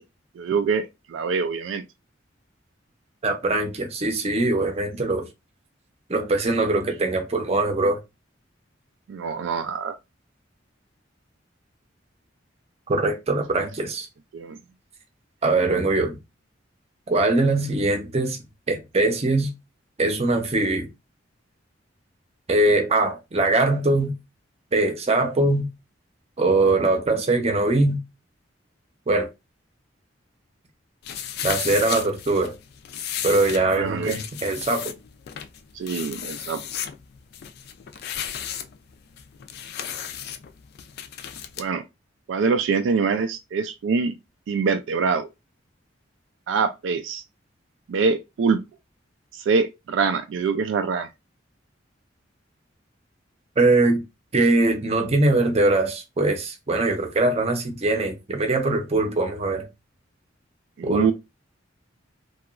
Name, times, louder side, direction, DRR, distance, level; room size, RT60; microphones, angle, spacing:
voice 1, 0.4-1.8 9.1-10.0 14.3-14.6 33.8-34.1 35.7-36.6 41.6-41.8 42.3-44.1 44.5-45.3 46.5-47.2 47.9-48.6 49.3-51.1 60.8-61.1, right 5 dB, 75° right, 0.3 m, -24 dB
voice 2, 3.2-5.3 6.1-8.0 12.9-14.1 15.4-16.2 17.1-18.4 18.7-19.5 20.0-20.9 22.5-24.1 24.7-25.7 26.4-28.0 29.1-29.3 31.4-32.5 33.2-34.9 53.6-54.0 54.3-59.7 60.8-61.1, right 2 dB, 35° right, 0.6 m, -22 dB
sound 1, 31.0-41.7, left 9 dB, 55° left, 0.3 m, -34 dB
2.9 x 2.3 x 2.3 m
head